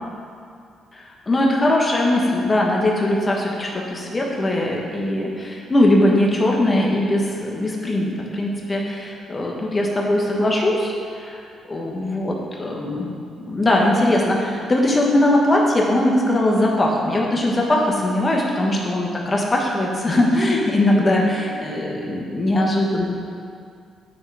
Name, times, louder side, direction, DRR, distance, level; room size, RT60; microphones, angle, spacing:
voice 1, 0.9-11.4 11.7-13.1 13.4-23.1, left 1 dB, 25° left, -1 dB, 1.2 m, -20 dB
8.7 x 3.7 x 4.8 m, 2.3 s
cardioid pair, 90°, 0 cm